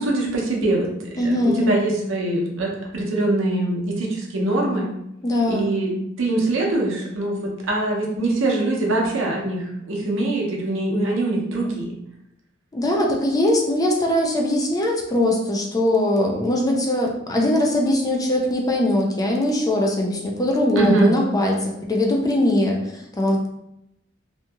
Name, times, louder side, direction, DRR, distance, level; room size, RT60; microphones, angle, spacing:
voice 1, 0.0-4.9 5.5-5.9 6.2-11.9 20.8-21.1, right 2 dB, 70° right, -1 dB, 0.7 m, -23 dB
voice 2, 1.2-1.7 5.2-5.7 12.7-23.5, left 1 dB, 20° left, 0 dB, 0.4 m, -21 dB
2.8 x 2.7 x 2.3 m, 0.81 s
head